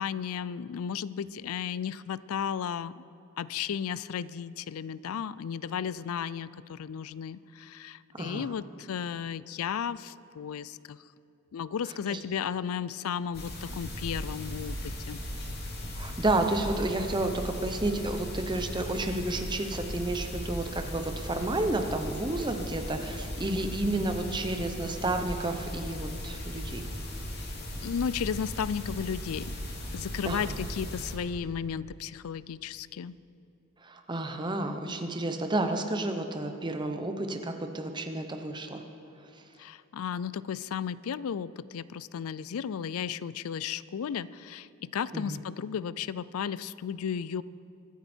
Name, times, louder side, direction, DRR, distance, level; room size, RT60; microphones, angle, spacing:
voice 1, 0.0-3.0 3.4-11.0 11.5-15.2 27.8-29.5 29.9-33.2 39.6-47.4, left 7 dB, 80° left, 18 dB, 0.4 m, -34 dB
voice 2, 8.1-8.5 11.9-12.2 15.9-26.8 30.2-30.6 33.8-38.8 45.1-45.4, right 2 dB, 20° right, 6 dB, 0.9 m, -31 dB
sound 1, 13.3-31.1, left 1 dB, 50° left, 2.4 m, -37 dB
24.0 x 9.9 x 4.5 m, 2.9 s
head